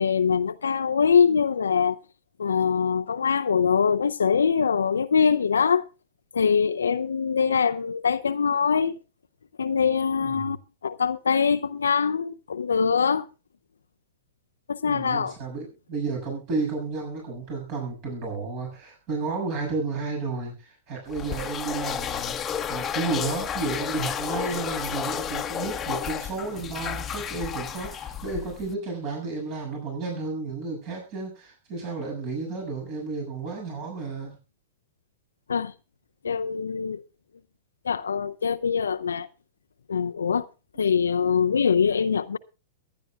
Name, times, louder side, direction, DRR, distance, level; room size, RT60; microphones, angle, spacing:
voice 1, 0.0-2.0 2.4-5.8 6.3-9.0 9.6-10.6 10.8-13.3 14.7-15.3 35.5-35.7 36.2-37.0 37.8-39.3 39.9-40.5 40.8-42.4, left 6 dB, 75° left, 0.5 m, -23 dB
voice 2, 14.8-22.4 22.7-34.4, right 4 dB, 45° right, 6.9 m, -32 dB
sound 1, 21.1-28.7, left 8 dB, 20° left, 1.1 m, -32 dB
22.5 x 10.5 x 2.4 m
figure-of-eight pair, 105°, 0 cm